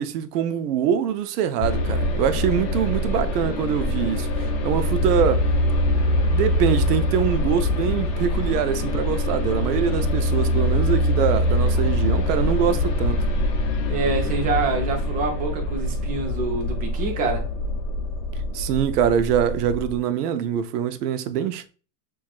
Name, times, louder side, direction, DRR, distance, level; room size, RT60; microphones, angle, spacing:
voice 1, 0.0-5.5 5.9-13.3 18.5-21.7, right 8 dB, 75° right, 0.6 m, -24 dB
sound 1, 1.6-20.0, left 1 dB, 35° left, 0.6 m, -24 dB
voice 2, 13.9-17.5, right 3 dB, 20° right, 0.5 m, -26 dB
4.5 x 2.3 x 2.3 m
supercardioid pair, 135°, 48 cm